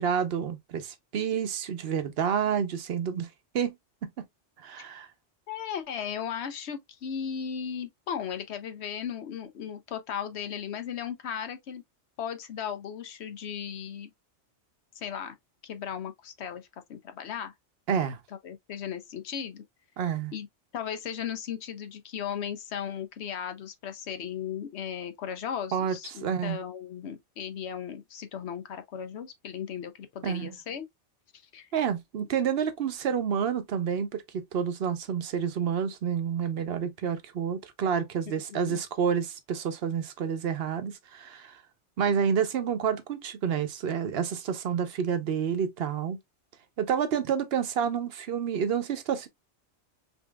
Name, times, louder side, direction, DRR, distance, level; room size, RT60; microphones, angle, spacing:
voice 1, 0.0-3.3 3.5-3.8 4.0-4.1 4.6-5.1 17.9-18.2 20.0-20.3 25.7-26.0 26.2-26.6 30.2-30.5 31.7-41.6 42.0-46.2 46.8-49.3, right 7 dB, 65° right, 0.8 m, -29 dB
voice 2, 5.5-11.8 12.2-14.1 15.0-15.4 15.6-17.5 18.4-19.6 20.3-20.5 20.7-30.9 31.5-31.7 38.3-38.8, left 8 dB, 70° left, 0.9 m, -36 dB
5.2 x 2.8 x 2.2 m
omnidirectional pair, 1.2 m